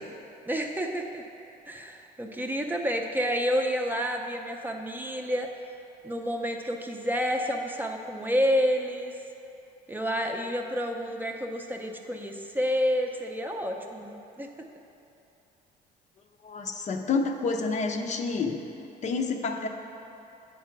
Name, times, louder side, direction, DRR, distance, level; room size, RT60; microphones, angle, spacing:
voice 1, 0.5-1.2 1.7-5.5 6.0-9.1 9.9-14.1 14.4-14.5, equal, 10° right, 2 dB, 0.6 m, -29 dB
voice 2, 16.4-18.6 19.0-19.7, left 4 dB, 45° left, 4 dB, 0.6 m, -28 dB
8.6 x 4.6 x 5.9 m, 2.8 s
cardioid pair, 110°, 17 cm